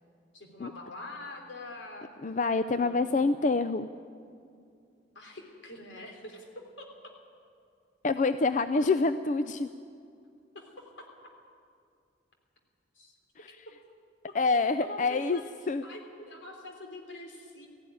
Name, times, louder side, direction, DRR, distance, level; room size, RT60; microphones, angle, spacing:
voice 1, 0.3-2.1 2.7-3.2 5.1-7.1 8.7-8.9 10.5-11.1 12.9-13.2 13.6-13.8 14.3-14.4 14.8-17.7, left 2 dB, 80° left, 2 dB, 3.3 m, -45 dB
voice 2, 2.2-3.9 8.0-9.7 14.3-15.4 15.7-15.8, left 3 dB, 40° left, 11 dB, 0.4 m, -26 dB
17.5 x 15.0 x 10.0 m, 2.4 s
head